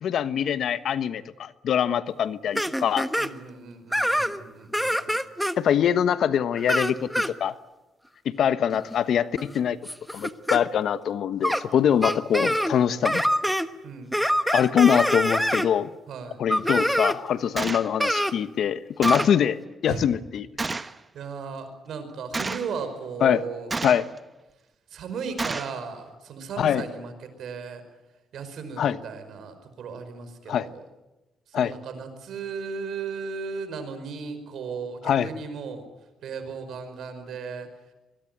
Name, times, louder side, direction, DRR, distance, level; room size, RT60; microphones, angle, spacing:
voice 1, 0.0-3.1 5.6-7.5 8.2-9.8 10.1-13.2 14.5-15.9 16.4-20.5 23.2-23.4 23.8-24.1 26.6-26.8 28.8-29.0 30.5-30.7 31.5-31.7 35.0-35.3, left 9 dB, 65° left, 13 dB, 1.2 m, -23 dB
sound 1, 2.6-3.3 3.9-4.4 4.7-5.6 6.6-7.3 8.7-8.9 9.4-10.6 11.4-11.6 12.0-12.8 13.0-13.7 14.1-15.7 16.5-17.2 18.0-18.3 19.0-19.3, equal, ahead, 1.2 m, -25 dB
voice 2, 3.2-5.1 13.8-14.1 16.1-16.4 19.9-20.0 20.7-23.7 24.9-27.8 28.3-30.8 31.5-35.9 36.2-37.7, right 5 dB, 70° right, 9 dB, 5.4 m, -36 dB
Gunshot gunfire, 17.6-17.9 19.0-19.4 20.6-21.0 22.3-22.7 23.7-24.2 25.4-25.8, right 3 dB, 25° right, 1.1 m, -30 dB
25.0 x 21.5 x 9.2 m, 1.0 s
cardioid pair, 90°, 0 cm